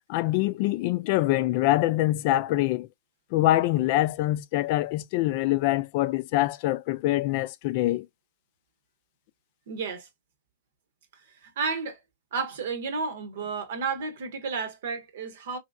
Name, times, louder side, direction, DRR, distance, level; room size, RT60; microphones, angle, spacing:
voice 1, 0.1-2.9 3.3-8.1, left 16 dB, 50° left, 0.4 m, -24 dB
voice 2, 9.7-10.1 11.4-12.0 12.3-15.6, right 5 dB, 65° right, 0.9 m, -32 dB
3.0 x 2.7 x 2.4 m
hypercardioid pair, 105°, 0 cm